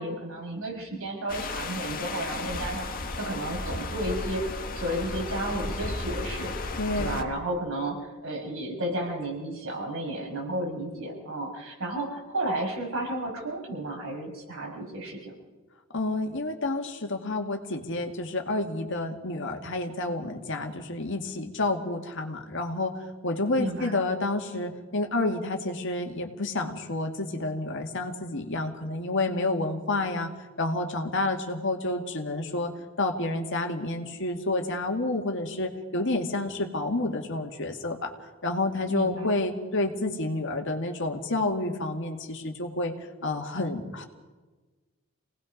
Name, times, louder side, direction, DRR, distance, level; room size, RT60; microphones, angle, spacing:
voice 1, 0.0-2.9 3.1-4.4 4.8-6.5 7.0-15.3 23.6-24.0 38.9-39.4, right 1 dB, 70° right, -1 dB, 6.1 m, -32 dB
sound 1, 1.3-7.2, left 2 dB, 45° left, 1.7 m, -34 dB
voice 2, 6.8-7.2 15.9-23.0 23.2-30.3 30.6-38.1 38.4-42.9 43.2-44.0, left 2 dB, 60° left, 4 dB, 2.2 m, -29 dB
27.5 x 19.0 x 5.3 m, 1.3 s
head